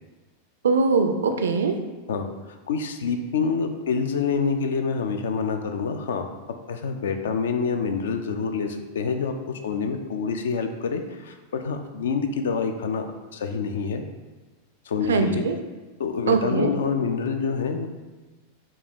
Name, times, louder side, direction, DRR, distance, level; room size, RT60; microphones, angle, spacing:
voice 1, 0.6-1.8 15.1-15.6 16.3-16.7, right 4 dB, 65° right, 7 dB, 0.3 m, -21 dB
voice 2, 2.1-6.3 6.7-9.3 9.6-13.0 13.3-14.0 14.9-15.5 16.0-17.9, left 5 dB, 60° left, 6 dB, 0.3 m, -27 dB
4.5 x 2.3 x 3.3 m, 1.2 s
figure-of-eight pair, 90°, 0 cm